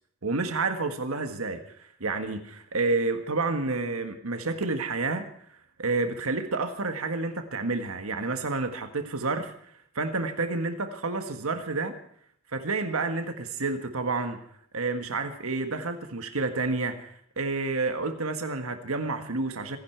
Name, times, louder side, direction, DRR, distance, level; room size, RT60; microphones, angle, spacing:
voice 1, 0.2-5.2 5.8-9.5 9.9-11.9 12.5-14.4 14.7-19.8, right 3 dB, 85° right, 7 dB, 1.6 m, -29 dB
27.0 x 10.5 x 4.6 m, 0.63 s
head